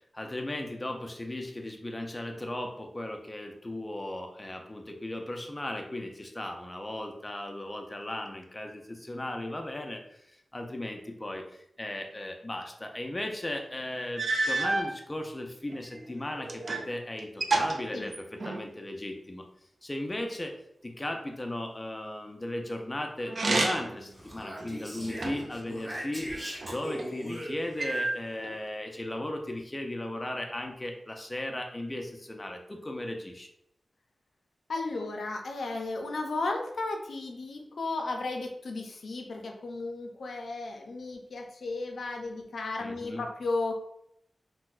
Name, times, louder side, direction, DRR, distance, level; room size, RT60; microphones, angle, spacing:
voice 1, 0.1-10.2 10.5-19.5 19.8-20.6 20.8-26.3 26.6-33.5 42.8-43.2, left 1 dB, 25° left, 3 dB, 0.4 m, -36 dB
sound 1, 13.6-13.7 14.2-14.9 15.7-16.9 17.2-18.7 23.3-24.0 24.6-25.6 26.3-27.1 27.8-28.5, right 2 dB, 65° right, 0.3 m, -30 dB
Speech, 24.1-28.0, equal, 20° right, 0.9 m, -40 dB
voice 2, 34.7-43.7, left 3 dB, 85° left, 3 dB, 0.4 m, -34 dB
4.0 x 2.1 x 2.4 m, 0.74 s
wide cardioid pair, 70°, 0 cm